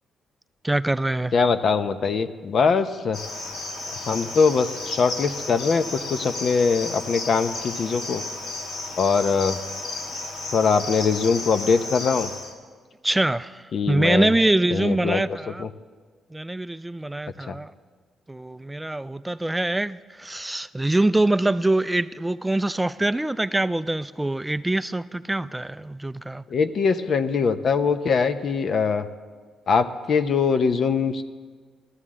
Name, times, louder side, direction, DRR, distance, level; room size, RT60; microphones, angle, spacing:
voice 1, 0.6-1.3 13.0-15.6 16.3-17.7 18.3-26.5, right 2 dB, 10° right, 0.4 m, -24 dB
voice 2, 1.3-3.2 4.0-8.2 9.0-9.6 10.5-12.3 13.7-14.3 14.7-15.2 15.6-15.7 17.4-17.6 26.5-29.1 29.7-31.2, left 5 dB, 55° left, 0.7 m, -22 dB
Cricket, 3.1-12.5, left 2 dB, 85° left, 2.5 m, -33 dB
18.0 x 13.0 x 3.7 m
cardioid pair, 90°, 0 cm